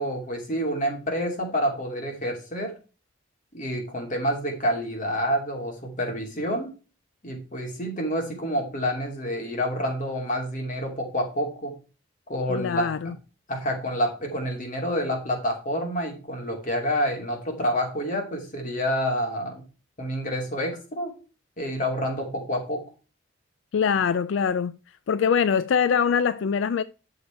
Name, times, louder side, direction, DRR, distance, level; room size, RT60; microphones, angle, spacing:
voice 1, 0.0-2.7 3.5-6.7 7.2-11.7 12.3-13.1 13.5-19.6 20.0-21.1 21.6-22.8, equal, 40° left, 2.8 m, -28 dB
voice 2, 12.5-13.1 23.7-24.8 25.1-26.8, left 7 dB, 70° left, 0.4 m, -23 dB
10.5 x 6.6 x 4.6 m
head